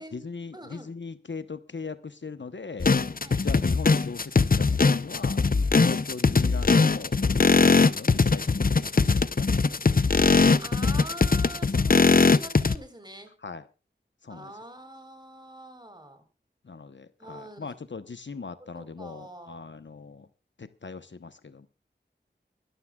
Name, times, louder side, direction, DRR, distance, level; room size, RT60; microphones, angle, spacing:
voice 1, 0.0-2.9 3.4-5.4 5.8-10.4 13.4-13.6 14.2-14.5 16.6-20.3 20.6-21.7, left 4 dB, 75° left, 12 dB, 0.9 m, -40 dB
voice 2, 0.5-0.9 3.2-3.4 10.6-13.3 14.3-16.2 17.2-18.1 18.7-19.7, right 1 dB, 25° right, 8 dB, 3.9 m, -44 dB
sound 1, 2.8-12.8, left 4 dB, 50° left, 0.7 m, -21 dB
24.0 x 13.5 x 2.3 m, 0.32 s
wide cardioid pair, 60°, 19 cm